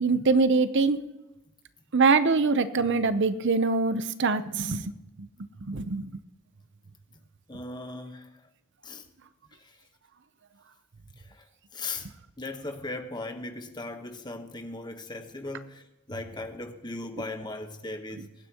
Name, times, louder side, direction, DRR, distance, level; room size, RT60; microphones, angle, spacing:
voice 1, 0.0-1.0 1.9-4.8 5.7-6.1, right 4 dB, 55° right, 0.7 m, -23 dB
voice 2, 7.5-8.3 8.8-9.1 9.6-9.8 11.2-11.5 11.7-12.1 12.4-18.3, left 2 dB, 20° left, 1.1 m, -38 dB
23.5 x 10.0 x 2.9 m
head